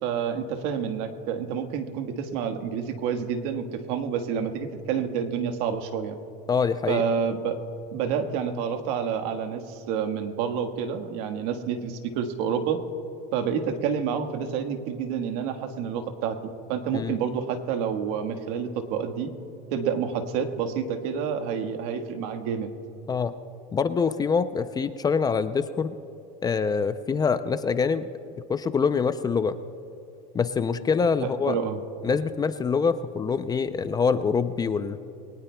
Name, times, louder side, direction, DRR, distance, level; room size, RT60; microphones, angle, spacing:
voice 1, 0.0-6.2 6.9-7.6 7.9-12.8 13.3-19.3 19.7-22.7 31.2-31.8, right 7 dB, 70° right, 7 dB, 1.5 m, -29 dB
voice 2, 6.5-7.0 16.9-17.2 23.1-23.3 23.7-25.9 26.4-28.0 28.5-29.6 30.3-31.6 32.0-35.0, left 5 dB, 20° left, 12 dB, 0.5 m, -25 dB
22.0 x 19.0 x 2.3 m, 2.8 s
supercardioid pair, 125°, 20 cm